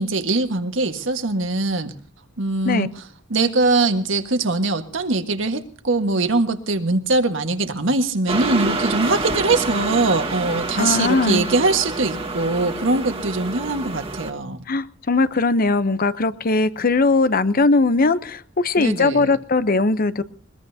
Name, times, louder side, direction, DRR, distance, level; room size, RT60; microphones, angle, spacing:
voice 1, 0.0-1.9 2.4-3.0 3.3-14.7 18.8-19.4, right 3 dB, 70° right, 7 dB, 1.6 m, -22 dB
sound 1, 8.3-14.3, right 3 dB, 30° right, 1.7 m, -27 dB
voice 2, 10.8-11.5 14.7-20.2, left 3 dB, 45° left, 14 dB, 0.8 m, -19 dB
21.5 x 21.5 x 2.8 m, 0.43 s
head